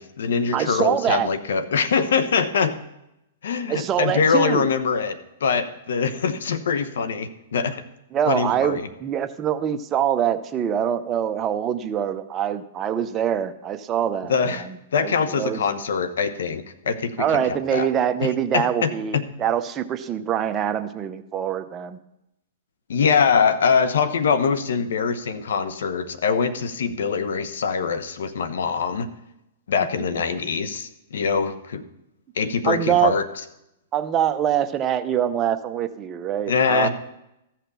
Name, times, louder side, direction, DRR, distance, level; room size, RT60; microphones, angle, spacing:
voice 1, 0.0-2.7 3.4-7.8 8.3-8.9 14.3-14.6 14.9-17.9 18.2-19.2 22.9-29.1 29.7-31.8 32.4-33.2 36.5-36.9, left 6 dB, 80° left, 11 dB, 1.1 m, -23 dB
voice 2, 0.5-1.3 3.7-4.7 8.1-15.6 17.2-22.0 32.6-33.1 33.9-36.9, right 9 dB, 25° right, 9 dB, 0.7 m, -24 dB
14.5 x 5.9 x 6.9 m, 0.85 s
hypercardioid pair, 135°, 0 cm